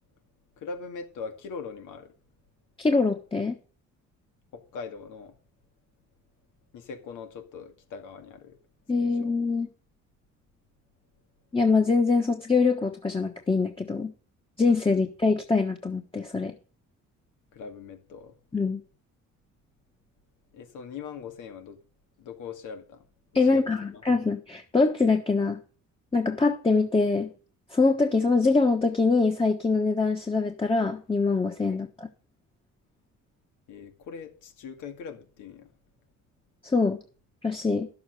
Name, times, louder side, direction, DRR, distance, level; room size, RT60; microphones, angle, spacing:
voice 1, 0.6-2.1 4.5-5.3 6.7-8.6 9.0-9.3 14.9-15.0 17.5-18.3 20.5-21.8 22.2-23.0 23.3-24.0 31.7-31.8 33.7-35.7, left 5 dB, 85° left, 2.1 m, -41 dB
voice 2, 2.8-3.6 8.9-9.7 11.5-14.1 14.6-16.5 18.5-18.8 23.3-25.6 26.1-27.3 27.7-32.1 36.6-37.0 37.4-37.9, left 4 dB, 15° left, 1.3 m, -24 dB
11.0 x 7.3 x 6.4 m
cardioid pair, 90°, 30 cm